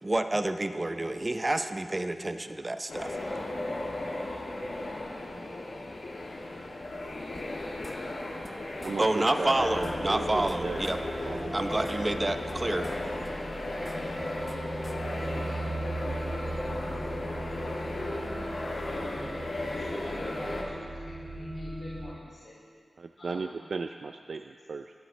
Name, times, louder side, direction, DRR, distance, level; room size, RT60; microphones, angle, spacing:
voice 1, 0.0-3.2 9.0-11.0 11.5-12.9, right 2 dB, 20° right, 8 dB, 0.6 m, -29 dB
sound 1, 2.9-20.6, left 2 dB, 75° left, 2.4 m, -35 dB
sound 2, 7.3-8.5 8.8-9.0 9.2-9.3 9.6-11.0 11.3-13.0 13.2-15.0, equal, 5° right, 0.9 m, -49 dB
voice 2, 8.8-11.9 23.0-24.9, right 4 dB, 65° right, 6 dB, 0.4 m, -37 dB
sound 3, 9.6-22.1, right 1 dB, 45° right, 2.9 m, -39 dB
voice 3, 19.7-22.6 23.2-23.4, left 1 dB, 55° left, -7 dB, 3.2 m, -48 dB
25.0 x 10.5 x 3.3 m, 2.2 s
wide cardioid pair, 135°, 0 cm